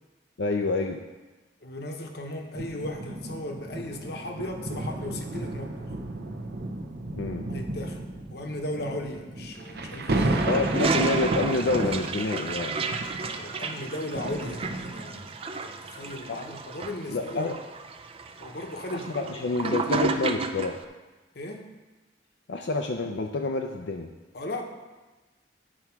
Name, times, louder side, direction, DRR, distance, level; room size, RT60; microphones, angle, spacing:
voice 1, 0.4-1.0 7.1-7.5 10.4-12.8 16.3-16.4 17.1-17.5 18.9-20.8 22.5-24.1, left 3 dB, 85° left, 2 dB, 0.5 m, -28 dB
voice 2, 1.6-5.9 7.5-8.0 8.3-10.5 13.3-15.3 15.6-17.6 18.4-20.2 21.3-21.7 24.3-24.6, left 1 dB, 60° left, 3 dB, 1.0 m, -36 dB
sound 1, 2.5-15.3 16.0-16.2, right 2 dB, 60° right, 0.7 m, -33 dB
Toilet flush, 10.2-20.8, right 4 dB, 30° right, 0.4 m, -32 dB
9.9 x 4.6 x 5.8 m, 1.2 s
head